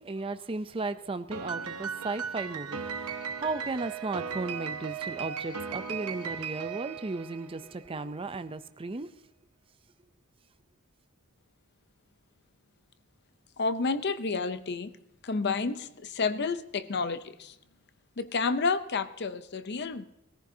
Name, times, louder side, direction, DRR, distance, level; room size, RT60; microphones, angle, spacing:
voice 1, 0.0-9.1, right 3 dB, 25° right, 10 dB, 0.5 m, -35 dB
Piano, 1.3-7.8, right 6 dB, 80° right, 0.8 m, -37 dB
voice 2, 13.6-14.9 15.2-17.5 18.2-20.1, left 4 dB, 50° left, 12 dB, 0.7 m, -30 dB
20.5 x 14.5 x 2.8 m, 0.85 s
head